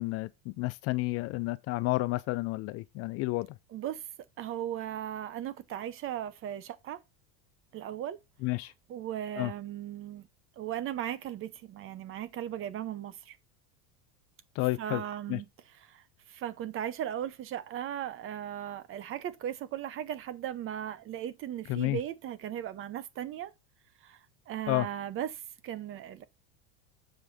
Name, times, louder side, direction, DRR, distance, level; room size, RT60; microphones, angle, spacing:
voice 1, 0.0-3.5 8.4-8.7 9.4-9.5 14.6-15.0 15.3-15.4 21.7-22.0 24.7-24.9, left 21 dB, 40° left, 0.4 m, -30 dB
voice 2, 3.7-4.0 4.4-7.0 7.7-8.2 8.9-10.2 10.6-13.4 14.8-15.5 15.8-23.5 24.0-24.2 24.5-26.2, right 11 dB, 35° right, 0.8 m, -37 dB
7.3 x 5.1 x 4.1 m
supercardioid pair, 140°, 37 cm